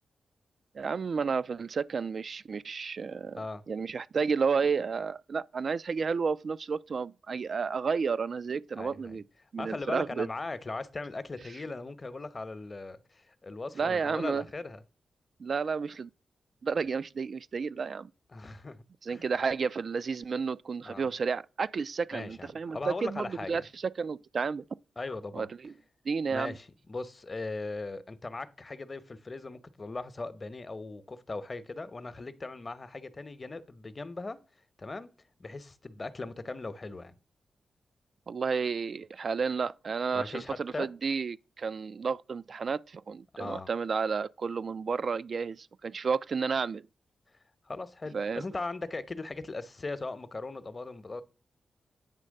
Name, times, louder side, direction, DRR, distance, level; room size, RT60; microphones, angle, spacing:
voice 1, 0.7-3.4 3.7-9.2 9.5-10.3 13.8-14.4 15.4-16.1 16.6-18.1 19.0-24.6 25.3-25.7 26.1-26.5 38.3-46.9 48.1-48.4, right 5 dB, 60° right, 0.3 m, -31 dB
voice 2, 8.8-9.2 9.6-14.8 18.3-19.3 20.8-21.1 22.1-22.5 22.7-23.6 25.0-25.5 26.3-34.4 34.8-35.1 35.4-37.1 40.1-40.9 43.3-43.7 47.7-51.2, left 3 dB, 40° left, 0.9 m, -39 dB
8.9 x 3.2 x 6.4 m
cardioid pair, 55°, 0 cm